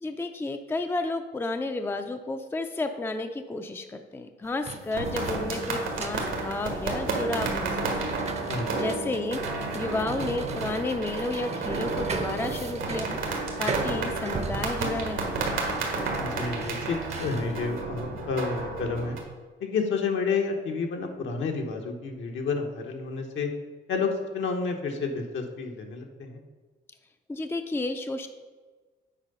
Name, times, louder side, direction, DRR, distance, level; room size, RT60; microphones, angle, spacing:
voice 1, 0.0-8.2 8.8-9.4 9.7-13.2 13.6-15.3 27.3-28.3, left 2 dB, 10° left, 7 dB, 0.5 m, -32 dB
sound 1, 4.4-17.7, right 4 dB, 35° right, 0.7 m, -38 dB
sound 2, 4.9-19.2, right 3 dB, 80° right, 1.6 m, -32 dB
voice 2, 8.5-8.8 16.2-19.2 19.6-23.5 23.9-26.4, left 4 dB, 70° left, 2 dB, 1.2 m, -30 dB
7.4 x 4.7 x 5.4 m, 1.4 s
cardioid pair, 90°, 20 cm